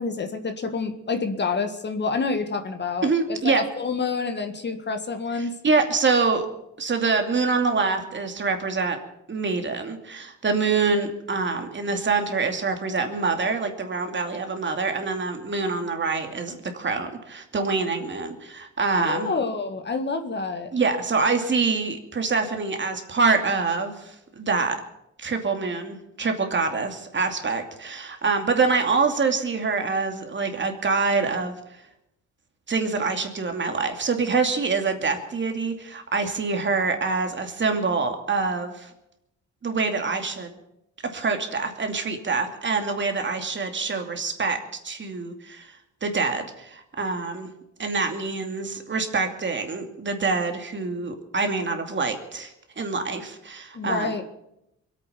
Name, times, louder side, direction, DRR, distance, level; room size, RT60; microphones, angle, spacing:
voice 1, 0.0-5.6 19.0-20.7 53.7-54.2, left 4 dB, 35° left, 6 dB, 1.8 m, -28 dB
voice 2, 3.0-3.6 5.4-6.5 6.8-9.0 9.3-19.3 20.7-24.8 25.2-31.6 32.7-38.9 39.6-40.6 41.0-47.5 47.8-54.2, right 4 dB, 40° right, 5 dB, 2.6 m, -25 dB
23.0 x 8.8 x 7.0 m, 0.82 s
cardioid pair, 90°, 30 cm